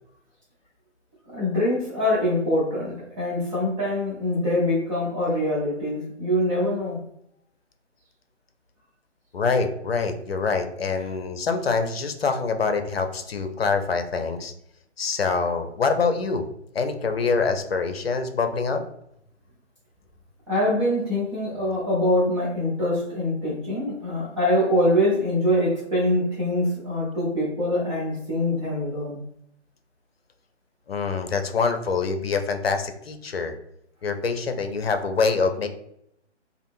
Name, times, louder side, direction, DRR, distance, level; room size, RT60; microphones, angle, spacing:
voice 1, 1.3-7.0 20.5-29.2, left 1 dB, 25° right, -7 dB, 0.9 m, -24 dB
voice 2, 9.3-14.5 15.0-16.4 16.7-18.8 30.9-33.5 34.0-35.7, left 4 dB, 55° left, 7 dB, 0.7 m, -25 dB
3.5 x 2.5 x 2.6 m, 0.74 s
figure-of-eight pair, 140°, 36 cm